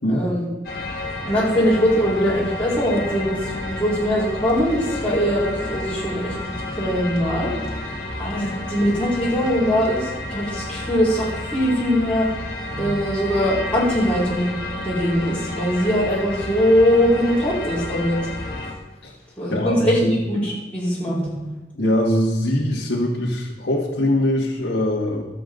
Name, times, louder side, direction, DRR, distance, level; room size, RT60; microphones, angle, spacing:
voice 1, 0.1-0.4 1.3-6.3 6.7-7.5 8.2-12.3 12.7-14.5 14.8-18.2 19.4-21.5, equal, 10° left, -10 dB, 5.0 m, -21 dB
sound 1, 0.6-18.7, left 2 dB, 55° left, 2.8 m, -31 dB
voice 2, 19.5-20.1 21.8-25.3, left 1 dB, 80° left, -5 dB, 2.0 m, -22 dB
21.0 x 7.7 x 4.0 m, 1.1 s
head